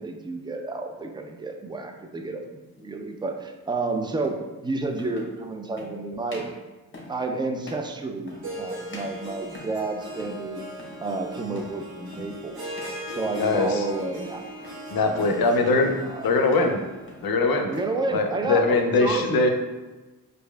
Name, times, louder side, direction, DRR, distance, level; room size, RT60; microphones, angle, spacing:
voice 1, 0.0-2.4 2.8-6.4 7.1-10.7 11.0-12.7 13.1-14.4 15.0-16.8 17.7-19.5, right 3 dB, 10° right, 4 dB, 0.4 m, -31 dB
sound 1, 2.7-2.9 4.2-4.3 4.9-5.4 5.7-6.0 6.3-6.6 6.9-7.2 7.6-7.9 8.3-8.6 8.9-9.9 10.2-10.5 10.7-11.0 11.5-11.8 12.1-12.4 12.7-13.0 13.3-13.7 14.0-14.8 15.2-15.5 15.8-16.1 16.4-16.8 17.1-17.9, left 2 dB, 30° left, 1.0 m, -44 dB
Harp, 8.3-17.3, equal, 75° right, 1.1 m, -38 dB
voice 2, 13.4-13.9 14.9-16.0 16.2-16.8 17.2-17.7 18.1-19.5, left 3 dB, 70° left, 4 dB, 0.6 m, -22 dB
4.6 x 2.6 x 2.2 m, 1.2 s
cardioid pair, 50°, 38 cm